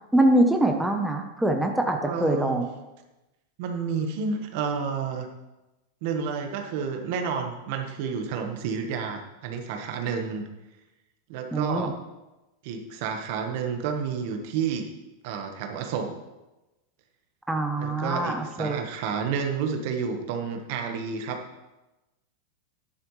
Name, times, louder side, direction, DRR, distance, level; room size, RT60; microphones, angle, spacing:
voice 1, 0.1-2.7 11.5-11.9 17.5-18.8, right 1 dB, 5° right, 3 dB, 0.9 m, -24 dB
voice 2, 2.0-2.6 3.6-5.3 6.0-10.4 11.3-11.9 12.6-14.9 15.2-16.2 17.8-21.4, right 6 dB, 60° right, 5 dB, 1.4 m, -30 dB
10.5 x 10.5 x 3.3 m, 1.0 s
supercardioid pair, 125°, 0 cm